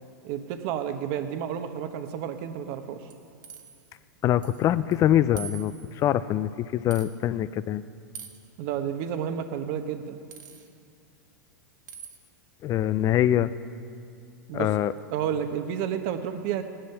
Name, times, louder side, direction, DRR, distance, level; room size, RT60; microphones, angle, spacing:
voice 1, 0.2-3.1 8.6-10.2 14.5-14.7 15.1-16.6, right 9 dB, 50° right, 8 dB, 1.1 m, -31 dB
sound 1, 3.1-3.8 4.4-4.6 4.9-5.0 5.4-6.0 6.9-7.1 8.1-8.5 10.3-10.7 11.9-12.2, right 6 dB, 80° right, 1.6 m, -43 dB
voice 2, 4.2-7.8 12.6-13.5 14.5-14.9, left 12 dB, 30° left, 15 dB, 0.5 m, -24 dB
16.5 x 11.5 x 5.8 m, 2.5 s
hypercardioid pair, 110°, 10 cm